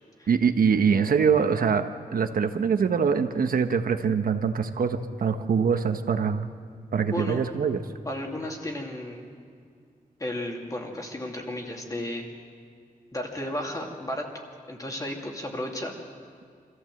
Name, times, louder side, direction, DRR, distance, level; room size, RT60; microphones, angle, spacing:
voice 1, 0.3-6.5 6.9-7.8, right 6 dB, 85° right, 7 dB, 1.2 m, -24 dB
voice 2, 7.0-7.4 8.0-9.2 10.2-12.2 13.1-15.9, left 1 dB, 25° left, 1 dB, 2.6 m, -33 dB
26.0 x 14.5 x 7.8 m, 2.3 s
wide cardioid pair, 145°, 14 cm